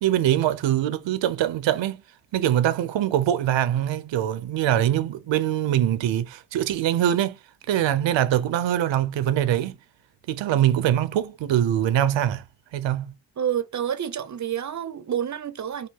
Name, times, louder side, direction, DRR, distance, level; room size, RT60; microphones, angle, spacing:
voice 1, 0.0-2.0 2.3-7.4 7.7-9.8 10.3-12.4 12.7-13.1, right 11 dB, 70° right, 0.8 m, -23 dB
voice 2, 13.4-15.9, right 9 dB, 40° right, 0.8 m, -28 dB
5.3 x 2.2 x 3.7 m
supercardioid pair, 65°, 47 cm